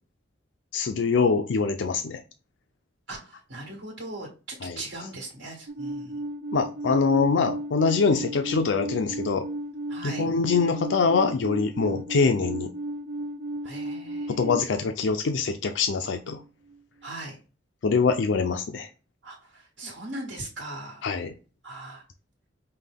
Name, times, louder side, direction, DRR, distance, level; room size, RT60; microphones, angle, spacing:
voice 1, 0.7-2.2 4.6-4.8 6.5-9.4 10.0-12.7 14.3-16.4 17.8-18.9 21.0-21.3, left 4 dB, 80° left, 7 dB, 0.5 m, -24 dB
voice 2, 3.1-6.1 9.9-10.3 13.6-14.5 17.0-17.3 19.2-21.0 21.6-22.0, right 2 dB, 85° right, -2 dB, 1.5 m, -39 dB
Alarm, 5.7-14.6, right 1 dB, 65° right, 0.4 m, -34 dB
5.5 x 2.2 x 3.4 m, 0.34 s
head